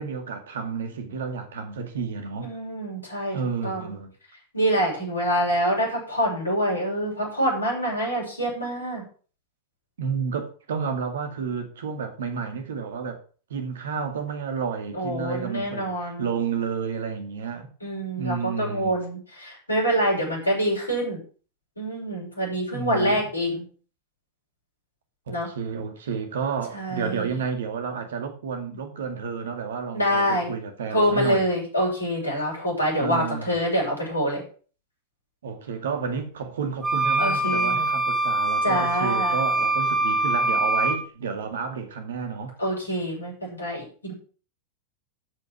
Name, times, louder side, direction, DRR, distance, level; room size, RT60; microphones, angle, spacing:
voice 1, 0.0-2.5 3.2-4.1 10.0-13.2 13.5-17.7 18.2-19.0 22.7-23.3 25.3-31.5 33.0-33.6 35.4-42.6, right 6 dB, 60° right, 2.1 m, -31 dB
voice 2, 2.4-3.4 3.6-3.9 4.5-9.0 14.9-16.3 17.8-21.2 21.8-23.6 25.3-25.5 26.7-27.3 29.9-30.6 30.9-34.4 37.2-37.8 38.6-39.3 42.6-43.3 43.6-44.1, equal, 85° left, 6.6 m, -26 dB
sound 1, 36.8-41.0, right 2 dB, 15° right, 2.4 m, -23 dB
13.0 x 5.5 x 6.0 m
figure-of-eight pair, 90°, 0 cm